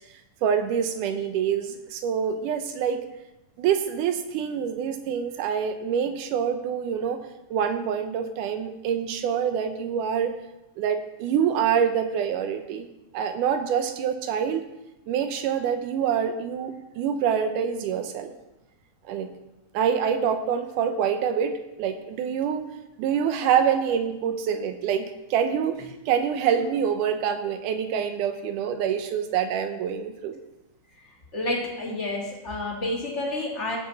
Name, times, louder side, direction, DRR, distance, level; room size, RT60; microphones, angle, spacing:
voice 1, 0.4-3.0 3.6-7.2 7.5-10.3 10.8-12.9 13.1-14.6 15.1-18.3 19.1-19.3 19.7-22.7 23.0-30.4, right 8 dB, 80° right, 8 dB, 2.4 m, -26 dB
voice 2, 31.3-33.8, left 1 dB, 25° left, -2 dB, 1.8 m, -29 dB
15.0 x 6.7 x 4.0 m, 0.96 s
omnidirectional pair, 3.6 m